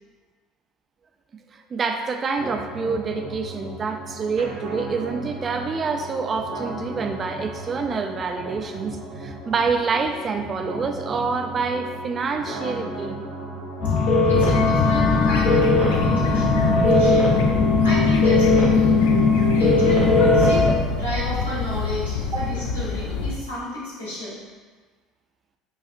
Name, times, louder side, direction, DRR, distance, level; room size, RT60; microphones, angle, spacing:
voice 1, 1.5-13.2 22.3-22.5, right 4 dB, 35° right, 5 dB, 0.4 m, -27 dB
sound 1, 2.4-18.4, right 1 dB, 75° right, 1.3 m, -37 dB
sound 2, 13.8-20.7, left 3 dB, 55° left, 0.8 m, -18 dB
voice 2, 14.0-17.4 17.8-18.9 19.3-20.6 20.9-24.4, left 1 dB, 90° left, -9 dB, 1.2 m, -33 dB
sound 3, 14.3-23.3, left 4 dB, 70° left, 0.3 m, -28 dB
5.4 x 2.4 x 2.4 m, 1.5 s
figure-of-eight pair, 65°, 0 cm